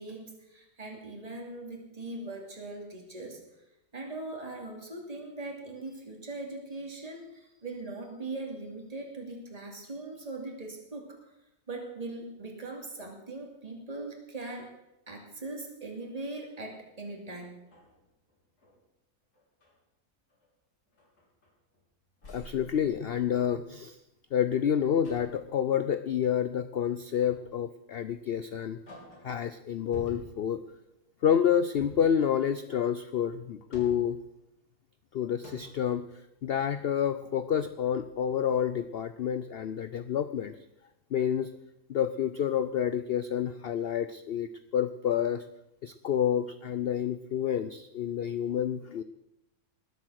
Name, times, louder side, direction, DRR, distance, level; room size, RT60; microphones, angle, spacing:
voice 1, 0.0-3.4 3.9-11.1 11.7-14.7 15.1-17.5, right 2 dB, 25° right, 0 dB, 2.6 m, -40 dB
sound 1, 17.6-18.8 19.3-19.8 20.3-20.5 20.9-21.8 22.2-23.7 25.0-25.5 27.1-27.6 28.0-28.2 28.6-29.4 29.9-30.5 31.7-32.2 33.4-34.2 35.0-35.1 35.4-35.9, left 1 dB, 90° left, 3.8 m, -50 dB
voice 2, 22.3-24.0 24.3-28.8 29.2-30.6 31.2-34.2 35.1-36.1 36.4-40.5 41.1-41.5 41.9-45.4 45.8-49.0, left 9 dB, 65° left, 12 dB, 0.6 m, -29 dB
20.0 x 8.0 x 6.3 m, 0.90 s
omnidirectional pair, 1.6 m